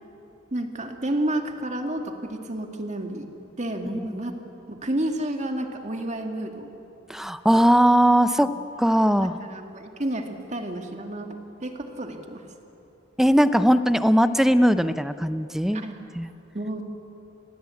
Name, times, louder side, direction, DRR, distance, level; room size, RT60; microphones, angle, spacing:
voice 1, 0.5-3.3 3.6-4.3 4.7-6.7 8.4-8.6 9.2-11.3 11.6-12.4 15.7-16.0 16.5-16.8, right 1 dB, 35° right, 4 dB, 2.3 m, -30 dB
voice 2, 7.1-8.5 8.8-9.3 13.2-15.8 16.1-16.3, equal, ahead, 11 dB, 0.7 m, -19 dB
29.0 x 21.0 x 8.6 m, 2.8 s
head